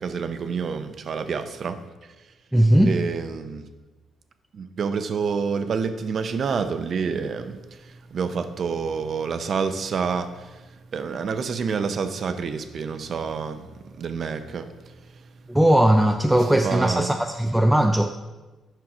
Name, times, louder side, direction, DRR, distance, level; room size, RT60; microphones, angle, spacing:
voice 1, 0.0-1.8 2.9-3.6 4.5-15.3 16.5-17.2, right 5 dB, 55° right, 9 dB, 0.6 m, -28 dB
voice 2, 2.5-2.9 15.5-18.1, right 1 dB, 5° right, 4 dB, 0.4 m, -18 dB
6.1 x 5.7 x 5.0 m, 1.2 s
cardioid pair, 90°, 0 cm